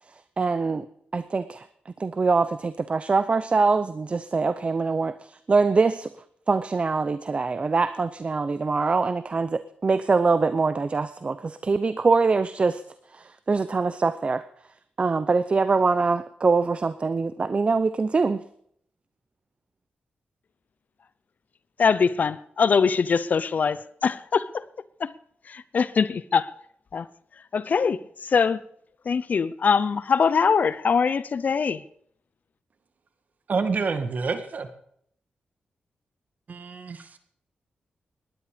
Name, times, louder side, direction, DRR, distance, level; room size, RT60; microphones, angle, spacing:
voice 1, 0.4-0.9 1.1-1.6 2.0-6.1 6.5-12.8 13.1-14.4 15.0-18.4, right 4 dB, 35° right, 0.7 m, -23 dB
voice 2, 21.8-24.6 25.0-25.1 25.5-26.5 26.9-27.1 27.5-28.6 29.0-31.8, left 5 dB, 55° left, 0.8 m, -23 dB
voice 3, 33.5-34.7 36.5-37.1, right 4 dB, 55° right, 2.1 m, -28 dB
19.0 x 11.0 x 5.1 m
cardioid pair, 90°, 3 cm